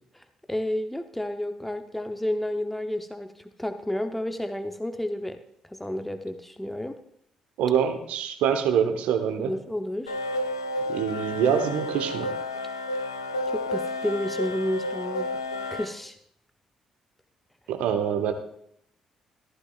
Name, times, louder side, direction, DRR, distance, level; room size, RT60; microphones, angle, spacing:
voice 1, 0.1-5.4 5.6-7.0 9.3-10.2 13.5-15.4 15.7-16.2, left 1 dB, 5° left, 7 dB, 0.8 m, -31 dB
voice 2, 7.6-9.5 10.9-12.3 17.7-18.3, right 8 dB, 65° right, 6 dB, 1.0 m, -25 dB
sound 1, 10.1-15.9, left 1 dB, 90° left, 0.6 m, -31 dB
14.5 x 14.0 x 2.4 m, 0.69 s
figure-of-eight pair, 45°, 2 cm